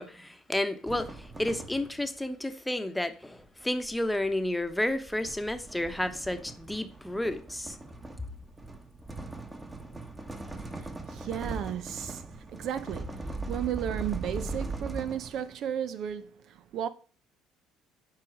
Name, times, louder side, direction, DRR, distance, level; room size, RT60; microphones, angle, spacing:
voice 1, 0.0-7.8, left 1 dB, 5° left, 1.0 m, -31 dB
sound 1, 0.9-2.2 3.4-15.6, right 2 dB, 20° right, 1.3 m, -40 dB
voice 2, 10.6-16.9, right 10 dB, 60° right, 0.5 m, -34 dB
7.6 x 4.9 x 4.7 m
hypercardioid pair, 60°, 0 cm